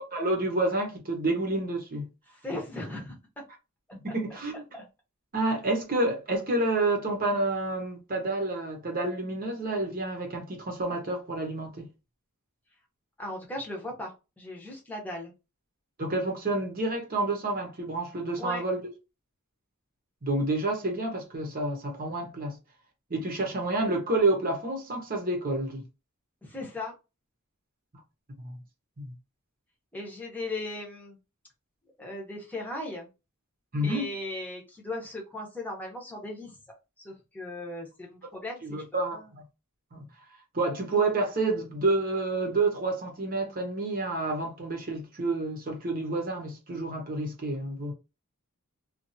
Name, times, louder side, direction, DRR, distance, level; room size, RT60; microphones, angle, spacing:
voice 1, 0.1-2.1 3.9-4.6 5.3-11.9 16.0-18.8 20.2-22.6 23.1-25.8 28.4-28.6 29.0-29.1 33.7-34.1 38.6-39.4 39.9-40.0 40.5-47.9, right 2 dB, 40° right, 1.0 m, -29 dB
voice 2, 2.4-3.4 4.1-4.4 4.7-4.8 13.2-15.3 18.4-18.6 26.4-26.9 29.9-31.2 32.0-33.1 33.7-38.8 39.1-39.3, left 1 dB, 10° left, 0.9 m, -38 dB
2.7 x 2.5 x 2.7 m
head